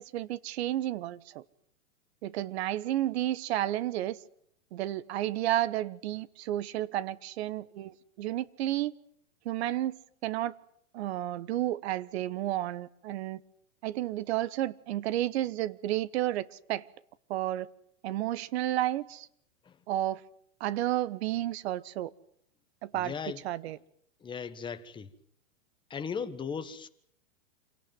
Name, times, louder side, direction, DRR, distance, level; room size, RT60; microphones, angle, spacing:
voice 1, 0.0-1.4 2.2-4.2 4.7-8.9 9.4-10.0 10.2-10.5 10.9-13.4 13.8-16.9 17.3-17.7 18.0-19.3 19.9-20.2 20.6-22.1 22.8-23.1 23.4-23.8, right 14 dB, 55° right, 1.3 m, -31 dB
voice 2, 22.9-23.4 24.2-25.1 25.9-26.9, left 6 dB, 10° left, 1.4 m, -37 dB
27.0 x 18.0 x 9.3 m
hypercardioid pair, 140°, 38 cm